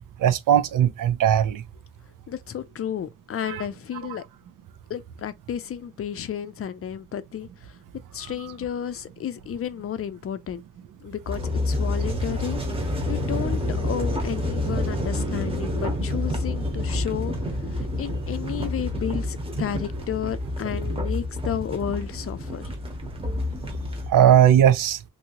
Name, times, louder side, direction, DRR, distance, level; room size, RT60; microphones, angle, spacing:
voice 1, 0.2-1.6 3.5-3.6 24.1-25.0, right 10 dB, 85° right, 0.6 m, -18 dB
voice 2, 2.3-4.2 4.9-7.8 8.1-10.6 11.0-22.6, left 9 dB, 45° left, 0.4 m, -32 dB
sound 1, 11.2-24.1, left 1 dB, 20° right, 0.9 m, -28 dB
2.7 x 2.6 x 2.9 m
wide cardioid pair, 145°, 32 cm